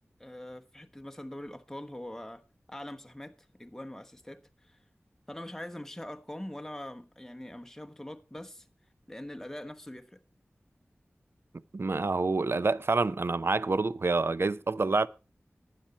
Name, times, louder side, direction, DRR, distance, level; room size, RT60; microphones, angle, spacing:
voice 1, 0.2-2.4 2.7-4.8 5.3-8.7 9.1-10.2, left 1 dB, 10° left, 1.2 m, -43 dB
voice 2, 11.7-15.1, right 3 dB, 60° right, 0.5 m, -27 dB
12.0 x 9.7 x 4.3 m
wide cardioid pair, 50°, 5 cm